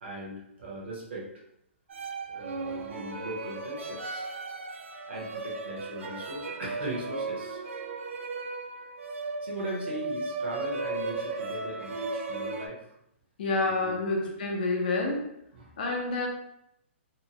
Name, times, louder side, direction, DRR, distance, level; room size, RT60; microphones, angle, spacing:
voice 1, 0.0-1.4 2.3-4.3 5.1-7.6 9.4-12.9 13.6-14.3 15.5-15.8, right 1 dB, 55° right, -4 dB, 0.9 m, -39 dB
sound 1, 1.9-12.7, right 3 dB, 75° right, 0.4 m, -36 dB
voice 2, 13.4-15.3 15.8-16.3, left 2 dB, 45° left, 1 dB, 0.6 m, -28 dB
2.8 x 2.2 x 2.8 m, 0.79 s
hypercardioid pair, 170°, 7 cm